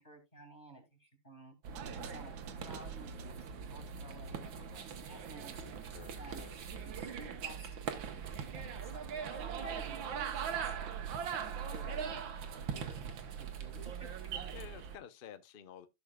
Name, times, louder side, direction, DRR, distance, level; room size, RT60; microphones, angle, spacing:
voice 1, 0.0-1.5 2.0-10.7 11.7-12.2 12.5-14.3, right 1 dB, 25° left, 2.4 m, -54 dB
sound 1, 1.6-15.0, right 7 dB, 90° right, 1.8 m, -41 dB
sound 2, 1.7-7.5, right 10 dB, 65° right, 1.1 m, -55 dB
voice 2, 5.9-6.6 11.4-11.7 14.5-15.9, left 8 dB, 70° left, 0.5 m, -51 dB
14.0 x 6.3 x 2.3 m
omnidirectional pair, 2.0 m